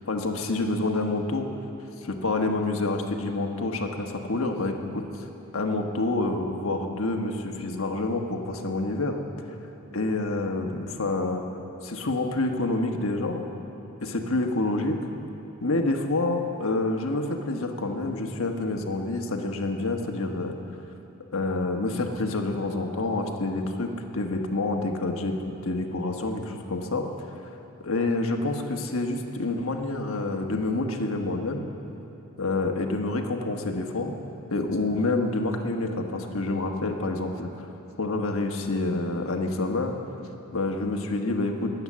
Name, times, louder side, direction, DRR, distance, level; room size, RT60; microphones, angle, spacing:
voice 1, 0.1-1.5 2.0-5.0 5.5-9.2 9.9-11.4 11.8-13.4 14.0-15.0 15.6-20.5 21.3-27.0 27.8-31.6 32.4-34.1 34.5-37.5 38.0-39.9 40.5-41.7, left 2 dB, 65° left, 3 dB, 1.2 m, -27 dB
20.0 x 8.1 x 7.4 m, 3.0 s
head